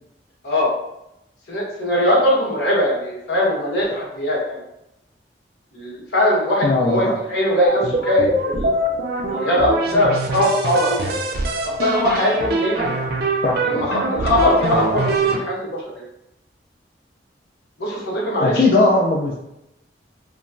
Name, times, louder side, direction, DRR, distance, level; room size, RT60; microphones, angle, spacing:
voice 1, 1.5-4.6 5.7-8.7 9.3-11.2 11.6-12.9 13.6-16.0 17.8-18.6, left 1 dB, 75° left, -5 dB, 1.0 m, -21 dB
voice 2, 6.6-7.2 13.4-13.8 18.4-19.4, left 2 dB, 50° left, -4 dB, 0.4 m, -18 dB
sound 1, 7.7-15.4, right 2 dB, 60° right, 0.4 m, -23 dB
3.0 x 2.2 x 2.4 m, 0.85 s
head